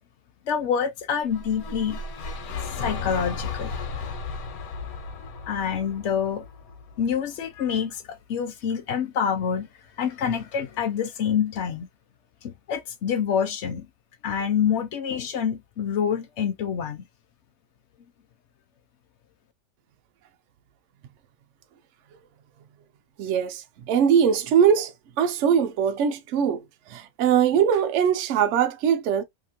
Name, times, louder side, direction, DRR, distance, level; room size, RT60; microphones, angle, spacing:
voice 1, 0.5-2.0 2.7-3.7 5.5-6.4 7.0-9.7 10.0-11.9 12.4-13.9 14.2-17.0, left 7 dB, 65° left, 0.7 m, -27 dB
sound 1, 1.3-7.4, left 4 dB, 85° left, 1.1 m, -35 dB
voice 2, 23.2-26.6 26.9-29.2, right 8 dB, 65° right, 0.8 m, -21 dB
2.9 x 2.4 x 2.8 m
omnidirectional pair, 1.5 m